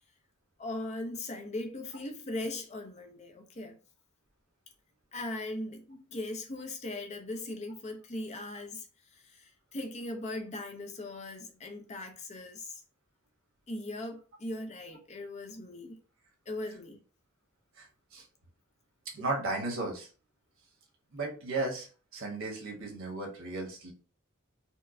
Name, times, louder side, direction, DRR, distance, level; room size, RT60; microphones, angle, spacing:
voice 1, 0.6-3.8 5.1-12.8 13.7-16.0 16.5-17.0, left 2 dB, 30° left, 0.6 m, -39 dB
voice 2, 19.1-20.1 21.1-23.9, right 2 dB, 65° right, 1.2 m, -35 dB
4.4 x 2.1 x 2.6 m
head